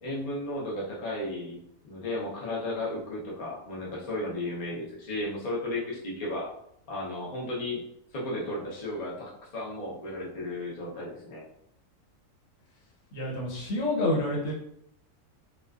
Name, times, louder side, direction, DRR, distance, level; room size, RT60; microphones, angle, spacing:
voice 1, 0.0-1.6 1.8-6.5 6.9-7.8 8.1-11.4, left 1 dB, 45° left, -4 dB, 0.5 m, -34 dB
voice 2, 13.1-14.5, left 1 dB, 75° left, -4 dB, 1.3 m, -28 dB
2.4 x 2.3 x 2.2 m, 0.74 s
omnidirectional pair, 1.4 m